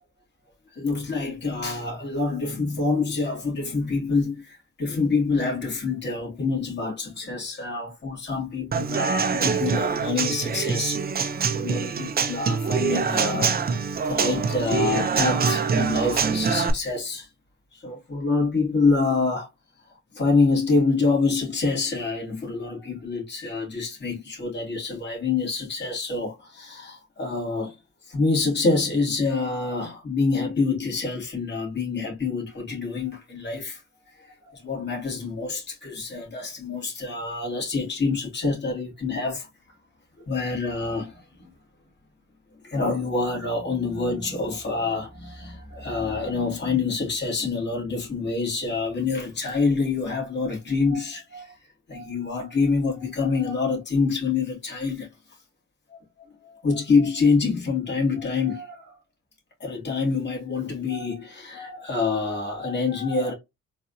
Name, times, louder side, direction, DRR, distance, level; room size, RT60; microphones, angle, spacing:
voice 1, 0.7-13.6 14.0-17.3 17.7-19.5 20.1-27.8 28.1-33.8 34.2-39.5 40.3-41.5 42.6-51.5 51.9-55.1 55.9-56.0 56.4-58.9 59.6-63.3, left 4 dB, 35° left, 2.1 m, -26 dB
Human voice / Acoustic guitar / Drum, 8.7-16.7, right 5 dB, 30° right, 0.5 m, -25 dB
3.9 x 2.5 x 2.6 m
cardioid pair, 90°, 30 cm